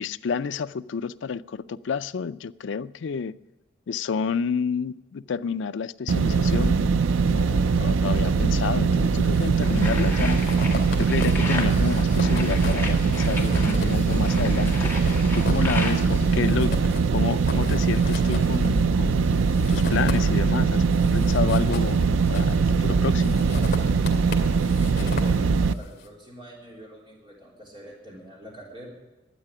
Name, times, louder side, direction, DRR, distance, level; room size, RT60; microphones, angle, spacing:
voice 1, 0.0-3.4 3.9-10.4 11.0-16.7 17.1-20.8 21.1-23.4, left 6 dB, 70° left, 14 dB, 0.4 m, -30 dB
sound 1, 6.1-25.7, right 5 dB, 85° right, 0.5 m, -22 dB
sound 2, 8.9-9.5 9.8-20.6 20.9-22.7 23.2-25.9, left 2 dB, 55° left, 2.4 m, -35 dB
sound 3, 9.6-16.3, left 3 dB, 10° left, 1.8 m, -34 dB
voice 2, 24.8-28.9, right 1 dB, 25° right, -3 dB, 3.6 m, -44 dB
12.5 x 9.0 x 9.8 m, 1.1 s
head